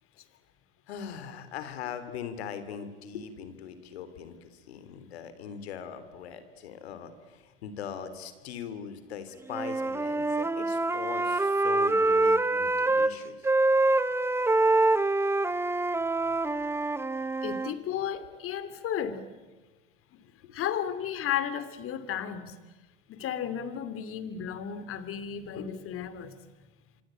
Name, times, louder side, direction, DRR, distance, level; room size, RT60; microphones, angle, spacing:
voice 1, 0.9-13.5 20.4-20.6, left 8 dB, 80° left, 12 dB, 3.3 m, -41 dB
Wind instrument woodwind instrument, 9.5-13.1 13.4-17.7, right 2 dB, 10° right, 1.0 m, -25 dB
voice 2, 17.4-19.3 20.1-20.2 20.5-22.6 23.1-26.3, left 9 dB, 45° left, 12 dB, 3.0 m, -33 dB
26.0 x 25.5 x 9.0 m, 1.2 s
hypercardioid pair, 95°, 31 cm